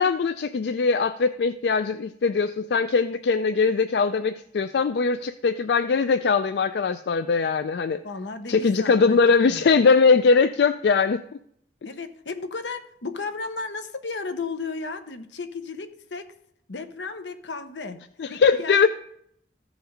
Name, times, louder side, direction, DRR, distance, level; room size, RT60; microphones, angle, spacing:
voice 1, 0.0-8.0 8.5-11.2 18.2-18.9, left 5 dB, 70° left, 11 dB, 0.3 m, -21 dB
voice 2, 8.0-9.2 9.5-9.6 11.8-16.3 16.7-18.9, left 4 dB, 85° left, 9 dB, 0.9 m, -34 dB
14.5 x 5.0 x 5.1 m, 0.70 s
head